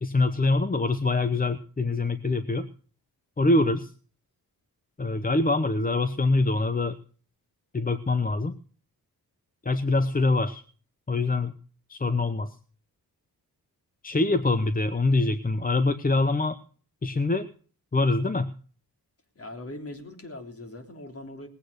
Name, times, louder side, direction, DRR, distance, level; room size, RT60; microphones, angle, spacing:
voice 1, 0.0-2.7 3.4-3.9 5.0-7.0 7.7-8.6 9.6-10.6 11.1-11.5 11.9-12.6 14.0-16.6 17.0-17.5 17.9-18.5, left 2 dB, 25° left, 11 dB, 0.9 m, -24 dB
voice 2, 19.4-21.5, left 1 dB, 40° left, 4 dB, 3.3 m, -40 dB
19.0 x 8.5 x 6.6 m, 0.42 s
cardioid pair, 85°, 37 cm